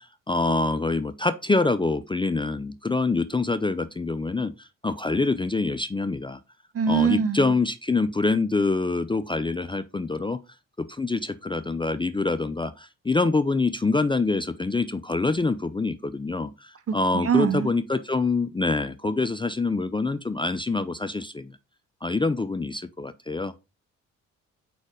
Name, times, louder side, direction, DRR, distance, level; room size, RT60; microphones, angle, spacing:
voice 1, 0.0-6.4 6.9-10.4 10.8-21.5 22.0-23.5, left 3 dB, 15° left, 0.5 m, -25 dB
voice 2, 6.7-7.5 17.1-17.7, right 6 dB, 40° right, 0.8 m, -23 dB
5.0 x 4.2 x 4.9 m
hypercardioid pair, 45°, 37 cm